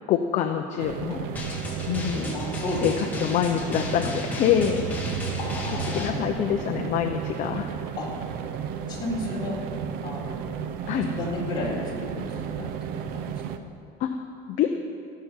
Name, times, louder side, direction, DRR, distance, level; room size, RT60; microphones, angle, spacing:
voice 1, 0.1-1.3 1.9-2.3 2.8-4.9 5.7-7.7 10.9-11.1 14.0-14.2 14.5-14.7, left 9 dB, 45° left, 5 dB, 0.7 m, -25 dB
sound 1, 0.8-13.6, right 8 dB, 60° right, 0.8 m, -34 dB
Drum, 1.4-6.1, right 1 dB, 10° left, 1.6 m, -33 dB
voice 2, 2.1-3.1 5.4-6.2 8.0-8.1 8.9-9.6 10.0-10.4 11.1-12.7 13.1-13.2, left 2 dB, 25° left, -5 dB, 4.1 m, -32 dB
16.5 x 6.8 x 9.3 m, 2.5 s
cardioid pair, 170°, 17 cm